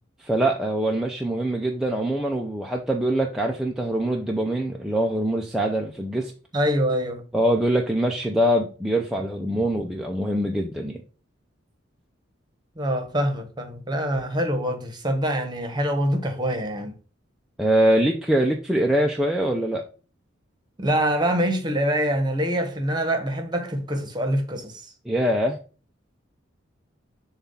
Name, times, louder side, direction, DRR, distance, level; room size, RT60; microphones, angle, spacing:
voice 1, 0.2-6.3 7.3-11.0 17.6-19.9 25.1-25.6, right 1 dB, ahead, 0.5 m, -23 dB
voice 2, 6.5-7.2 12.8-16.9 20.8-24.8, equal, 20° right, 1.1 m, -25 dB
7.0 x 2.4 x 5.5 m
head